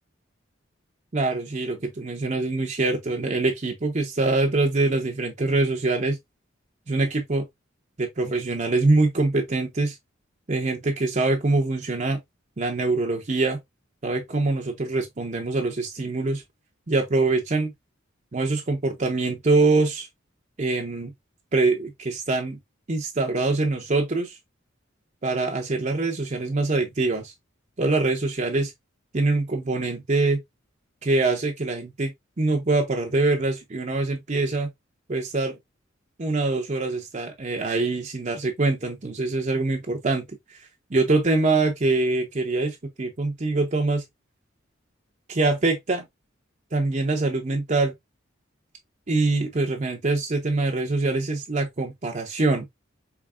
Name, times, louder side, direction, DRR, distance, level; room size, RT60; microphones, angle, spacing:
voice 1, 1.1-6.2 6.9-7.5 8.0-9.9 10.5-12.2 12.6-13.6 14.0-16.4 16.9-17.7 18.3-20.1 20.6-21.1 21.5-22.6 22.9-24.3 25.2-27.3 27.8-28.7 29.1-30.4 31.0-32.1 32.4-34.7 35.1-35.6 36.2-40.2 40.9-44.0 45.3-46.0 46.7-47.9 49.1-52.6, right 3 dB, 40° right, 0.7 m, -24 dB
4.8 x 3.1 x 2.3 m
head